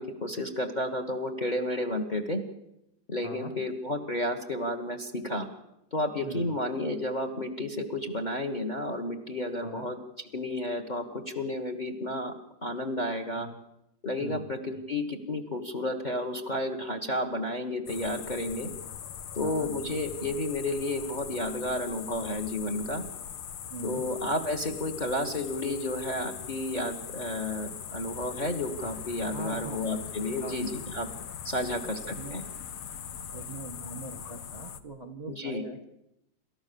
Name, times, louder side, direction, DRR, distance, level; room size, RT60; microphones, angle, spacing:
voice 1, 0.0-2.4 3.1-5.5 5.9-10.0 10.3-12.3 12.6-13.5 14.0-18.7 19.3-23.0 23.8-31.1 31.4-32.4 35.3-35.6, left 1 dB, 25° left, 8 dB, 1.4 m, -32 dB
voice 2, 3.2-3.5 6.2-6.5 9.6-9.9 13.3-13.5 14.2-14.8 19.4-19.7 23.7-24.1 29.3-30.0 30.4-30.6 31.6-32.4 33.2-35.8, right 2 dB, 25° right, 7 dB, 1.2 m, -42 dB
sound 1, 17.9-34.8, left 8 dB, 75° left, 1.9 m, -41 dB
28.5 x 13.5 x 7.0 m, 0.85 s
omnidirectional pair, 2.4 m